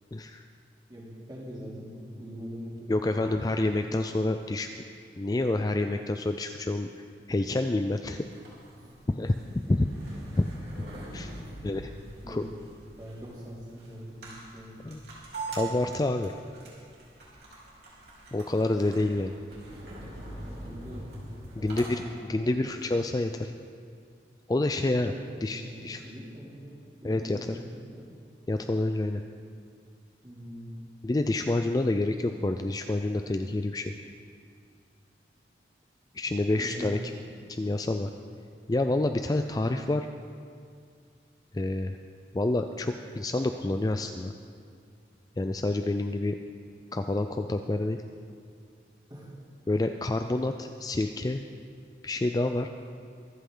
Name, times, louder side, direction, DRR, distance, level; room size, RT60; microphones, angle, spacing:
voice 1, 0.1-0.4 2.9-4.7 5.2-8.2 9.1-9.3 9.7-9.8 10.4-10.5 11.1-11.3 11.6-11.9 12.3-12.4 14.8-15.0 15.5-16.3 18.3-19.4 21.6-22.0 22.3-23.5 24.5-25.1 25.4-26.0 27.0-27.6 28.5-29.2 31.0-33.9 36.1-37.0 37.6-38.1 38.7-40.1 41.5-42.0 42.3-44.3 45.4-46.4 46.9-48.0 49.7-51.4 52.0-52.7, left 2 dB, 20° left, 6 dB, 0.3 m, -28 dB
voice 2, 0.9-3.9 8.7-9.0 9.5-9.6 11.1-11.9 12.2-12.6 13.0-14.9 20.4-21.1 21.6-22.6 25.1-28.1 30.2-30.7 36.5-37.3 49.1-49.3, equal, 25° right, -6 dB, 3.0 m, -43 dB
sound 1, 8.2-21.9, right 2 dB, 60° right, 3.5 m, -43 dB
24.0 x 8.5 x 3.9 m, 2.2 s
head